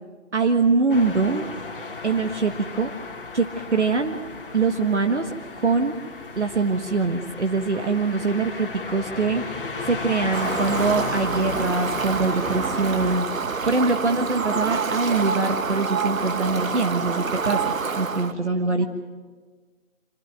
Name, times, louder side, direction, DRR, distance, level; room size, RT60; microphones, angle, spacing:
voice 1, 0.3-1.5 2.0-2.9 3.3-4.2 4.5-5.3 5.6-6.0 6.4-9.4 9.9-13.2 13.6-18.9, right 4 dB, 60° right, 6 dB, 1.6 m, -23 dB
sound 1, 0.9-13.2, left 4 dB, 40° left, 1.9 m, -35 dB
voice 2, 7.7-8.0 18.3-18.9, right 3 dB, 25° right, 3 dB, 2.2 m, -45 dB
Fowl, 10.3-18.3, right 5 dB, 80° right, 1.4 m, -27 dB
26.0 x 13.0 x 9.4 m, 1.4 s
hypercardioid pair, 180°, 40 cm